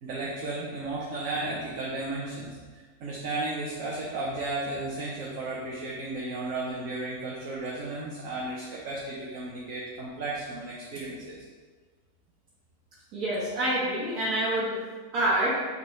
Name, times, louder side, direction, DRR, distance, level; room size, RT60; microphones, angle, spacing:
voice 1, 0.0-11.4, right 2 dB, 65° right, -5 dB, 1.2 m, -34 dB
voice 2, 13.1-14.8 15.1-15.5, right 1 dB, 85° right, -8 dB, 2.0 m, -26 dB
8.4 x 4.1 x 3.1 m, 1.4 s
omnidirectional pair, 1.6 m